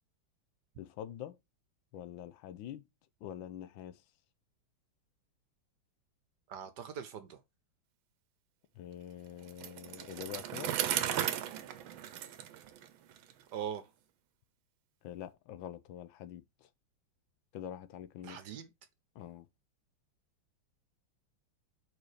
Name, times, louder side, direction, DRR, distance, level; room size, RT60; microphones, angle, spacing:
voice 1, 0.8-1.4 1.9-2.8 3.2-4.0 8.7-10.7 15.0-16.7 17.5-18.4 19.1-19.5, left 11 dB, 75° left, 1.4 m, -45 dB
voice 2, 6.5-7.4 13.5-13.9 18.2-18.7, right 8 dB, 65° right, 1.3 m, -41 dB
Bicycle, 9.5-13.3, right 10 dB, 80° right, 1.5 m, -36 dB
4.9 x 4.7 x 4.8 m
omnidirectional pair, 2.2 m